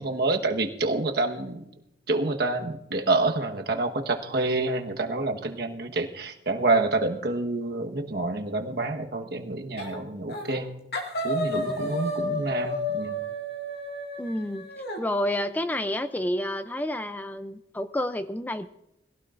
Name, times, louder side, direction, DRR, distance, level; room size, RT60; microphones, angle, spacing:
voice 1, 0.0-1.7 2.1-10.8 11.2-13.2, right 2 dB, 60° right, 4 dB, 1.3 m, -27 dB
sound 1, 9.8-10.0 10.3-10.6 10.9-15.0, left 1 dB, 60° left, 2.3 m, -31 dB
voice 2, 11.5-11.9 14.2-14.7 15.0-18.7, left 1 dB, 10° left, 11 dB, 0.4 m, -30 dB
21.5 x 16.5 x 2.5 m, 0.83 s
head